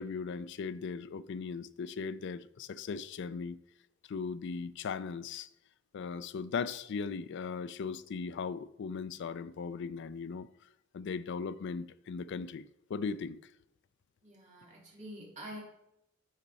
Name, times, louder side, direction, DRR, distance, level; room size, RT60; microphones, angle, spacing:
voice 1, 0.0-3.6 4.1-5.5 5.9-10.5 10.9-13.4, left 5 dB, 60° left, 0.4 m, -38 dB
voice 2, 14.2-15.6, equal, 35° right, 2.4 m, -46 dB
9.9 x 4.3 x 4.0 m
head